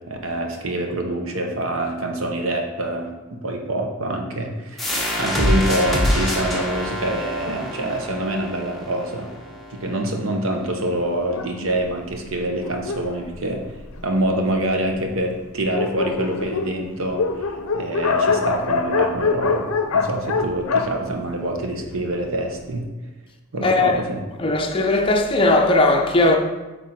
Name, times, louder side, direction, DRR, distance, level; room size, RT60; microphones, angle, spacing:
voice 1, 0.1-9.3 9.7-13.8 14.0-22.9 23.5-24.2, right 1 dB, 65° right, 0.9 m, -26 dB
sound 1, 4.8-10.2, equal, ahead, 1.1 m, -25 dB
Dog, 11.3-14.3 15.0-15.1 15.3-15.4 15.6-22.0, left 4 dB, 80° left, 0.5 m, -25 dB
voice 2, 23.6-24.0 24.4-26.4, left 2 dB, 25° left, 0.6 m, -18 dB
8.7 x 3.6 x 4.3 m
head